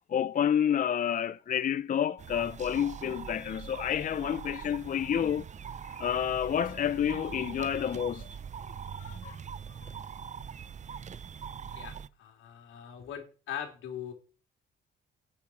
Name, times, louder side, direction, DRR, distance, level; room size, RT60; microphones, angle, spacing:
voice 1, 0.1-5.5 6.0-8.4 8.9-9.4 9.8-9.9, left 9 dB, 45° left, 0.5 m, -29 dB
sound 1, 2.2-12.1, right 7 dB, 35° right, 0.6 m, -42 dB
voice 2, 11.7-14.1, left 9 dB, 85° left, 3.4 m, -41 dB
9.6 x 7.3 x 6.3 m
cardioid pair, 90°, 20 cm